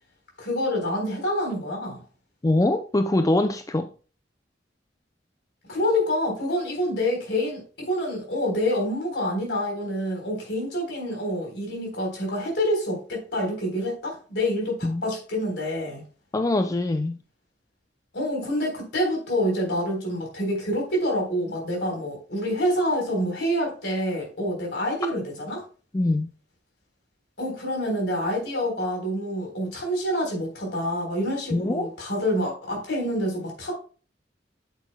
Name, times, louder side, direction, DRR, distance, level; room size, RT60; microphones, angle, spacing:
voice 1, 0.4-2.0 5.7-16.0 18.1-25.6 27.4-33.7, equal, 70° left, 3.8 m, -27 dB
voice 2, 2.4-3.9 14.8-15.0 16.3-17.2 25.9-26.3 31.5-31.9, left 2 dB, 20° left, 0.4 m, -23 dB
8.5 x 8.2 x 2.2 m
head